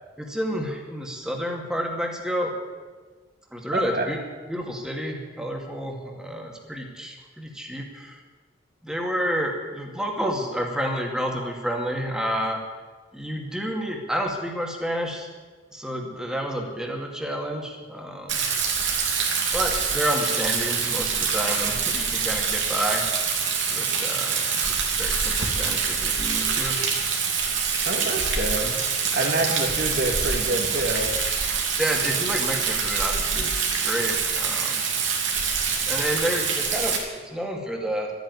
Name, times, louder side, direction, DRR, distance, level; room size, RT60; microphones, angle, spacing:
voice 1, 0.2-2.5 3.5-4.2 4.5-8.2 8.8-12.6 13.1-15.3 15.7-18.5 19.5-23.0 23.7-26.8 31.8-33.5 33.8-34.8 35.9-38.1, equal, 5° right, 0 dB, 2.3 m, -29 dB
voice 2, 3.7-4.1 27.8-28.8 29.1-31.1, right 2 dB, 55° right, 3 dB, 2.2 m, -27 dB
Rain, 18.3-37.0, right 5 dB, 80° right, 2.8 m, -25 dB
13.0 x 9.4 x 9.9 m, 1.4 s
head